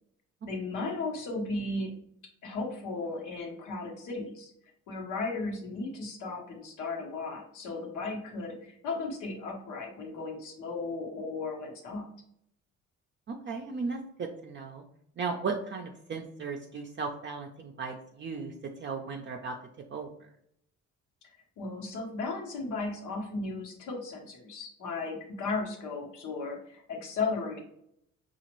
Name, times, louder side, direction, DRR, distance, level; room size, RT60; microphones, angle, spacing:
voice 1, 0.4-1.9 2.4-4.5 4.9-12.1 21.2-21.3 21.6-27.6, left 3 dB, 85° left, 1 dB, 1.1 m, -35 dB
voice 2, 13.3-14.8 15.2-19.6 19.9-20.1, right 4 dB, 40° right, 2 dB, 0.5 m, -36 dB
4.9 x 2.4 x 3.0 m, 0.71 s
cardioid pair, 90°, 30 cm